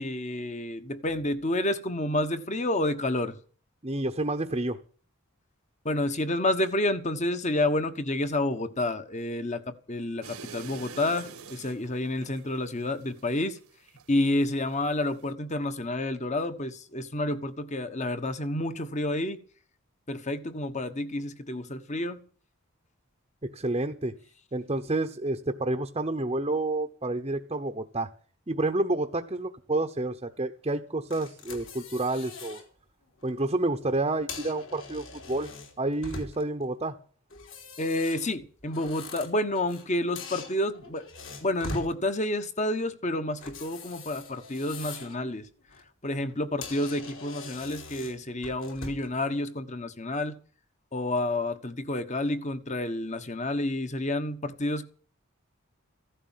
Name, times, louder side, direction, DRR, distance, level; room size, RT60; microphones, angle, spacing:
voice 1, 0.0-3.4 5.8-9.6 9.9-13.6 14.1-19.4 20.1-22.2 37.8-41.0 41.4-45.5 46.0-50.3 50.9-54.9, left 1 dB, 30° left, 1.2 m, -29 dB
voice 2, 3.8-4.8 23.5-24.1 24.5-28.1 28.5-32.6 33.2-35.5 35.8-37.0, right 2 dB, 25° right, 0.9 m, -29 dB
sound 1, 10.2-14.4 14.7-15.3, right 5 dB, 90° right, 1.6 m, -45 dB
sound 2, 31.1-32.6 33.1-33.3 34.1-36.6 37.3-39.9 40.2-41.9 43.4-45.2 45.6-45.8 46.3-46.4 46.6-49.1, left 3 dB, 60° left, 3.8 m, -42 dB
15.5 x 11.5 x 7.4 m
head